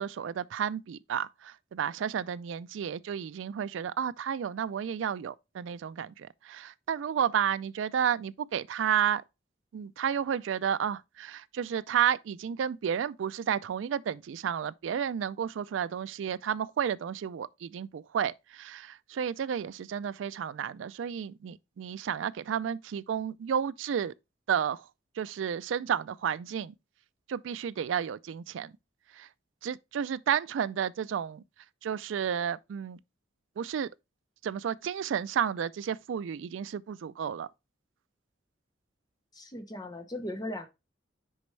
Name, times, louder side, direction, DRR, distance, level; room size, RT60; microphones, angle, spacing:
voice 1, 0.0-9.2 9.7-24.1 24.5-24.8 25.2-26.7 27.3-28.7 29.2-29.3 29.6-31.4 31.8-33.0 33.6-33.9 34.4-37.5, right 8 dB, 75° right, 0.3 m, -32 dB
voice 2, 39.3-40.7, left 1 dB, 20° left, 0.9 m, -38 dB
6.4 x 5.1 x 3.2 m
head